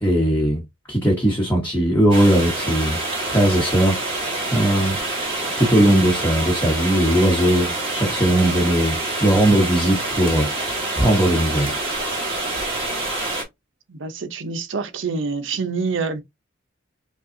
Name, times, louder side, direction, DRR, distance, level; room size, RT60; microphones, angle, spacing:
voice 1, 0.0-0.6 0.9-5.0 5.5-10.5 10.9-11.7, right 1 dB, 10° left, 1.1 m, -19 dB
sound 1, 2.1-13.4, right 2 dB, 30° right, 1.6 m, -26 dB
voice 2, 13.9-16.2, right 4 dB, 75° right, 0.7 m, -26 dB
5.3 x 2.4 x 2.6 m
head